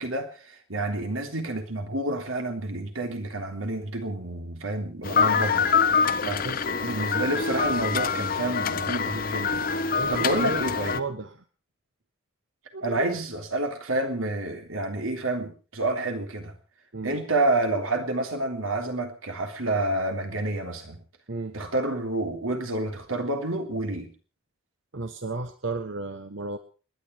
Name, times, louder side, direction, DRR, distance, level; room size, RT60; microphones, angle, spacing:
voice 1, 0.0-5.7 6.2-11.0 12.7-16.5 17.0-21.0 21.5-24.1, right 2 dB, 85° right, 4 dB, 3.3 m, -29 dB
sound 1, 5.0-11.0, left 5 dB, 45° left, 0.9 m, -25 dB
voice 2, 6.2-6.6 10.0-10.6 10.9-11.3 12.9-13.0 16.9-17.2 21.3-21.6 24.9-26.6, right 3 dB, 65° right, 8 dB, 1.2 m, -33 dB
29.0 x 10.5 x 4.7 m, 0.37 s
head